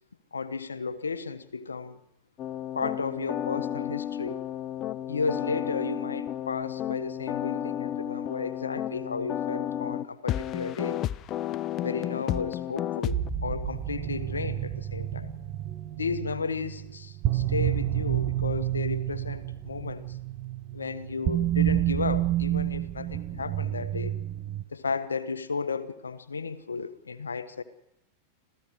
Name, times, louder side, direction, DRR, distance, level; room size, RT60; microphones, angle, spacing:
voice 1, 0.3-2.0 2.7-4.4 5.1-11.0 11.8-15.4 16.0-20.2 20.7-24.1 24.7-27.6, left 4 dB, 75° left, 12 dB, 1.4 m, -33 dB
sound 1, 2.4-13.3, left 11 dB, 35° left, 0.7 m, -32 dB
sound 2, 13.1-24.6, right 13 dB, 35° right, 1.7 m, -29 dB
27.0 x 16.0 x 6.4 m, 0.85 s
figure-of-eight pair, 90°, 0 cm